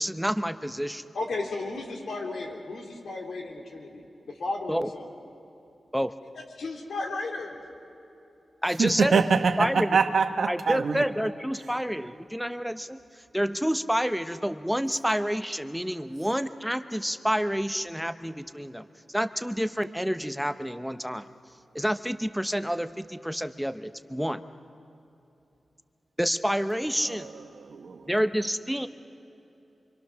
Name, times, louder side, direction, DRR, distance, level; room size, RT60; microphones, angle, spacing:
voice 1, 0.0-1.0 4.7-4.9 5.9-6.1 8.6-9.2 9.6-10.0 10.5-13.0 13.3-21.2 21.7-24.4 26.2-27.3 28.1-28.9, equal, ahead, 10 dB, 0.7 m, -28 dB
voice 2, 1.1-5.1 6.6-7.6, left 3 dB, 85° left, 1 dB, 3.1 m, -34 dB
voice 3, 8.8-11.0 27.1-27.2 27.7-28.0, right 5 dB, 80° right, 7 dB, 1.2 m, -24 dB
25.5 x 25.0 x 6.3 m, 2.9 s
wide cardioid pair, 80°, 0 cm